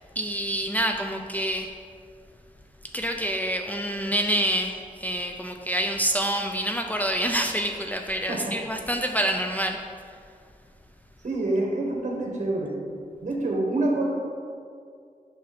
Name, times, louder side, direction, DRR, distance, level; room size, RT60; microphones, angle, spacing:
voice 1, 0.2-1.7 2.9-9.8, right 1 dB, 10° left, 3 dB, 0.5 m, -27 dB
voice 2, 8.3-8.6 11.2-12.7 13.2-14.1, right 2 dB, 55° right, -2 dB, 1.8 m, -26 dB
7.7 x 5.6 x 4.1 m, 2.2 s
wide cardioid pair, 95°, 15 cm